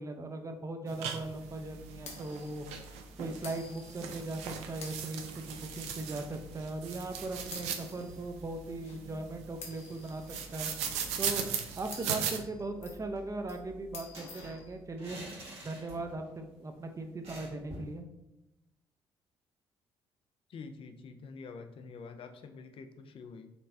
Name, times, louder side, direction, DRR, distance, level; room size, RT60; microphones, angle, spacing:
voice 1, 0.0-2.7 3.2-10.2 10.5-10.7 11.2-11.4 11.8-15.2 15.6-18.1, right 2 dB, 25° right, 5 dB, 0.6 m, -39 dB
sound 1, 0.9-12.4, right 7 dB, 70° right, 0.4 m, -39 dB
sound 2, 1.2-14.8, left 2 dB, 65° left, 0.8 m, -51 dB
sound 3, 11.5-12.2 12.5-12.6 12.9-16.3 16.6-16.7 17.2-18.0, right 1 dB, 50° right, 1.5 m, -49 dB
voice 2, 20.5-23.5, left 4 dB, 50° left, 7 dB, 0.5 m, -47 dB
4.3 x 3.1 x 2.6 m, 0.91 s
hypercardioid pair, 45°, 12 cm